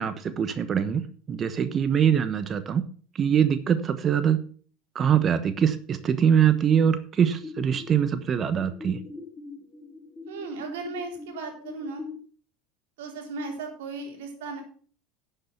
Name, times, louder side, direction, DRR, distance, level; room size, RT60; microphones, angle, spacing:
voice 1, 0.0-2.8 3.2-4.4 4.9-9.0, right 8 dB, 35° right, 12 dB, 1.2 m, -23 dB
sound 1, 7.2-12.2, left 3 dB, 10° left, 2.7 m, -42 dB
voice 2, 10.3-12.0 13.0-14.6, right 3 dB, 70° right, 2 dB, 3.8 m, -36 dB
11.5 x 7.3 x 5.9 m, 0.43 s
hypercardioid pair, 75°, 0 cm